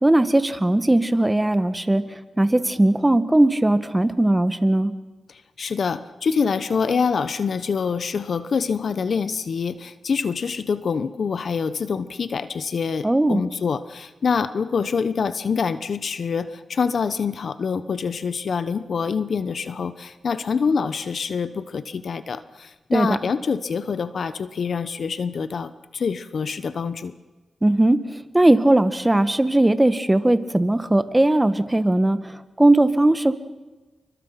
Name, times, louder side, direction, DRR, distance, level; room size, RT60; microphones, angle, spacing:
voice 1, 0.0-2.0 2.4-4.9 13.0-13.4 22.9-23.2 27.6-28.0 28.3-33.3, right 1 dB, 15° right, 11 dB, 1.7 m, -18 dB
voice 2, 5.3-27.1, left 5 dB, 65° left, 13 dB, 1.1 m, -25 dB
28.5 x 24.5 x 5.9 m, 1.2 s
cardioid pair, 65°, 0 cm